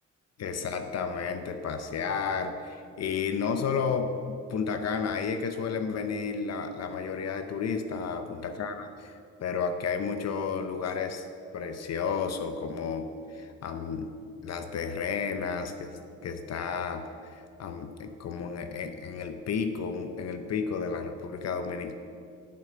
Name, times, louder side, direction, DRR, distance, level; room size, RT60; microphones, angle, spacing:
voice 1, 0.4-4.1 4.5-11.3 11.5-14.1 14.4-21.9, left 5 dB, 60° left, 7 dB, 0.8 m, -32 dB
7.4 x 6.3 x 7.4 m, 2.3 s
cardioid pair, 90°, 30 cm